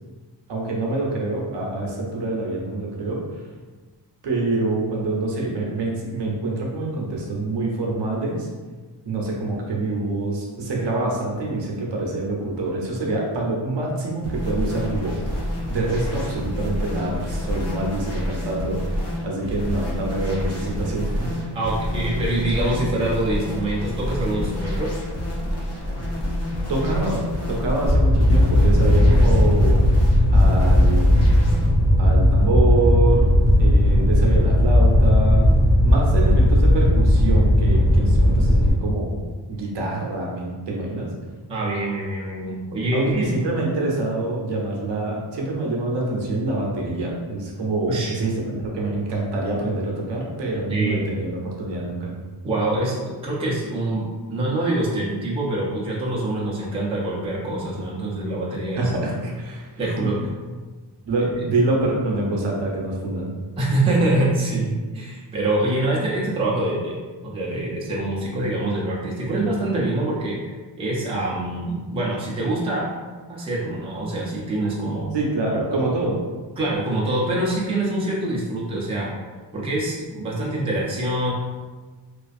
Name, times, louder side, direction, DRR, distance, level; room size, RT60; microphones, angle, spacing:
voice 1, 0.5-3.4 4.2-8.5 9.0-15.3 15.7-21.4 26.7-27.2 27.5-29.8 30.3-31.1 32.0-33.3 33.6-35.5 35.8-39.1 39.5-41.1 42.9-52.1 58.8-59.7 60.0-60.1 61.1-63.3 69.3-69.7 75.1-76.2, right 2 dB, 70° right, -2 dB, 0.7 m, -26 dB
sound 1, 14.2-31.7, left 1 dB, 35° left, 0.6 m, -28 dB
voice 2, 21.5-24.9 41.5-43.3 47.9-48.1 50.7-51.0 52.4-58.9 59.8-60.2 63.6-67.0 67.2-72.9 73.3-75.1 76.6-79.1 79.5-81.3, right 1 dB, 15° right, -5 dB, 0.4 m, -25 dB
Fire, 27.9-38.7, left 1 dB, 5° left, 1.0 m, -16 dB
2.4 x 2.3 x 2.4 m, 1.4 s
wide cardioid pair, 160°, 43 cm